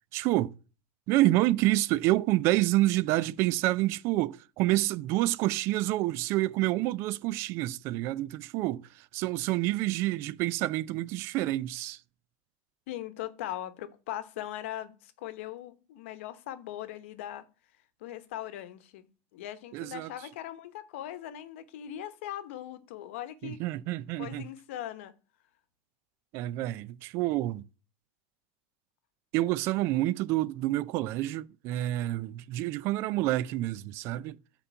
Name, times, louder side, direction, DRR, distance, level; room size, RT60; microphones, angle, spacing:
voice 1, 0.1-0.6 1.1-12.0 19.7-20.1 23.4-24.5 26.3-27.6 29.3-34.4, right 17 dB, 40° right, 0.4 m, -28 dB
voice 2, 12.9-17.5 18.0-23.6 24.2-25.1, left 12 dB, 70° left, 0.9 m, -40 dB
8.2 x 3.8 x 5.7 m
supercardioid pair, 165°, 7 cm